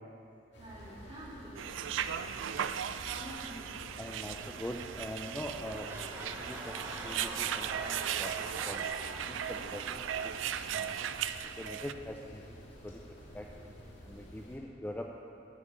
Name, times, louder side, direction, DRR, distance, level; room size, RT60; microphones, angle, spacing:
sound 1, 0.5-14.6, equal, 75° left, 1.8 m, -51 dB
voice 1, 0.5-3.7, right 1 dB, 30° right, -7 dB, 2.5 m, -49 dB
sound 2, 1.6-11.9, right 9 dB, 85° right, 0.3 m, -37 dB
voice 2, 4.0-5.9 6.4-11.1 11.4-13.8 14.0-15.1, left 1 dB, 10° left, 1 dB, 0.3 m, -44 dB
sound 3, 5.4-11.2 11.8-11.9, right 1 dB, 15° right, 0.9 m, -45 dB
9.6 x 5.2 x 8.2 m, 2.7 s
head